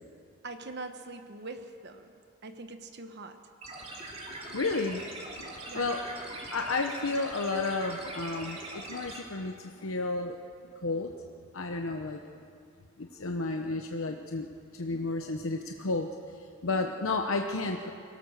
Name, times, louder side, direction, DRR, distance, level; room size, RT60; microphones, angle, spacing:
voice 1, 0.4-2.1 2.4-3.4 5.7-5.8, right 3 dB, 55° right, 7 dB, 1.2 m, -42 dB
sound 1, 3.6-9.2, right 2 dB, 30° right, 2.8 m, -42 dB
voice 2, 4.5-5.1 5.3-6.0 6.5-10.4 10.8-11.1 11.5-12.2 13.0-14.5 14.7-16.1 16.6-17.9, left 3 dB, 70° left, 4 dB, 0.9 m, -32 dB
23.5 x 17.0 x 6.6 m, 2.4 s
head